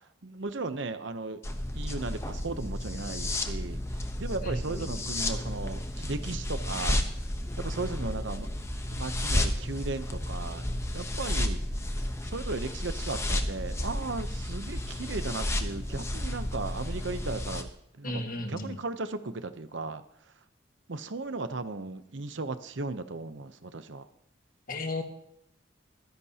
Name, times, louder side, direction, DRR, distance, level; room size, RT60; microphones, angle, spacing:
voice 1, 0.2-1.4 1.7-3.8 4.2-7.0 7.6-8.5 8.8-11.6 12.2-17.7 18.0-18.2 18.5-20.0 20.9-24.1, right 3 dB, 65° right, 10 dB, 0.8 m, -36 dB
sound 1, 1.4-17.6, left 1 dB, 15° left, 0.9 m, -32 dB
voice 2, 4.4-4.9 18.0-18.8 24.7-25.0, left 2 dB, 45° left, 5 dB, 1.5 m, -34 dB
24.5 x 10.5 x 2.9 m, 0.75 s
head